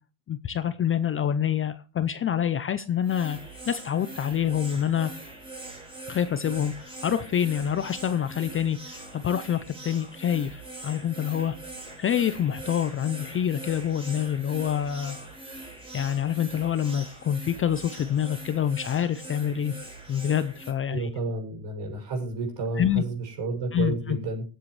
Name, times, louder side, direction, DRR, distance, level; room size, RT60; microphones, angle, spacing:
voice 1, 0.3-3.4 3.7-5.1 6.1-11.6 12.0-15.2 15.9-19.7 20.1-21.1 22.8-23.0 23.7-24.2, left 9 dB, 25° left, 13 dB, 0.5 m, -26 dB
sound 1, 3.0-20.7, right 2 dB, 10° right, 6.6 m, -42 dB
voice 2, 20.9-24.4, right 3 dB, 55° right, 2 dB, 6.5 m, -31 dB
21.0 x 7.9 x 3.2 m, 0.34 s
cardioid pair, 135°, 50 cm